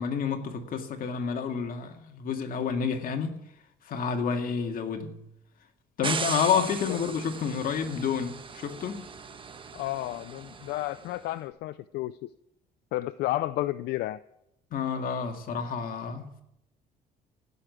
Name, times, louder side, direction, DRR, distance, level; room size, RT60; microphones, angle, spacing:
voice 1, 0.0-3.4 3.8-5.2 6.0-9.1 14.7-16.4, left 6 dB, 55° left, 2.1 m, -29 dB
sound 1, 6.0-11.2, right 5 dB, 30° right, 1.2 m, -38 dB
voice 2, 9.7-12.3 12.9-14.2, left 16 dB, 80° left, 0.5 m, -32 dB
16.0 x 6.9 x 9.7 m
cardioid pair, 110°, 17 cm